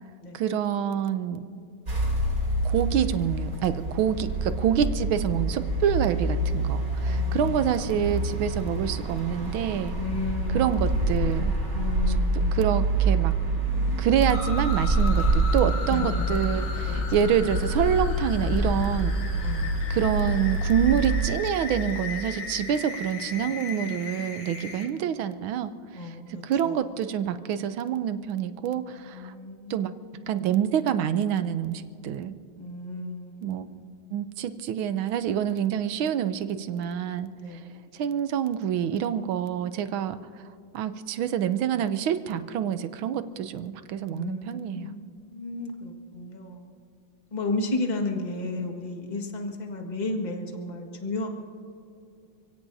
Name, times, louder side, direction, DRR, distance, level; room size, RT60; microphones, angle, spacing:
voice 1, 0.3-1.4 2.6-9.9 10.5-11.6 12.5-13.3 14.0-19.1 19.9-29.3 29.7-29.9 30.3-32.3 33.4-33.6 34.1-37.6 37.9-40.2 40.7-44.9, right 9 dB, 80° right, 11 dB, 1.5 m, -27 dB
sound 1, 1.9-21.3, right 2 dB, 40° right, 3.5 m, -26 dB
voice 2, 7.1-7.8 9.9-11.0 11.7-12.6 15.9-16.2 16.5-17.0 19.4-20.0 24.6-24.8 25.9-26.8 29.0-30.3 32.6-33.9 37.3-37.9 44.1-46.7 47.3-51.3, left 2 dB, 25° left, 2 dB, 1.6 m, -34 dB
sound 2, 14.3-24.9, left 4 dB, 70° left, 2.3 m, -37 dB
29.5 x 17.0 x 2.7 m, 2.5 s
omnidirectional pair, 2.2 m